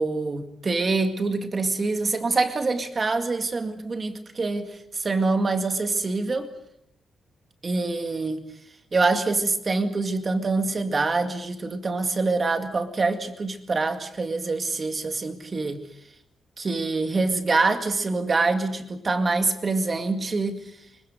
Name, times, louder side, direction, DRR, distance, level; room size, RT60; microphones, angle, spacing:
voice 1, 0.0-6.5 7.6-8.4 8.9-15.8 16.6-20.6, right 3 dB, 25° right, 7 dB, 2.1 m, -25 dB
24.5 x 23.5 x 6.8 m, 0.79 s
wide cardioid pair, 170°, 0 cm